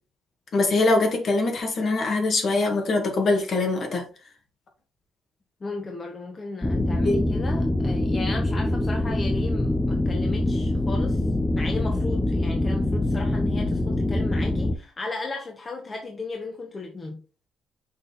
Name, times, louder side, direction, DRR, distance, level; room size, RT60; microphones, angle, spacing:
voice 1, 0.5-4.0 6.8-7.2, left 2 dB, 55° left, 2.1 m, -23 dB
voice 2, 5.6-11.2 11.6-17.2, left 3 dB, 30° left, 1.4 m, -35 dB
sound 1, 6.6-14.8, left 1 dB, 10° left, 0.6 m, -24 dB
6.4 x 3.8 x 4.0 m
cardioid pair, 90°, 0 cm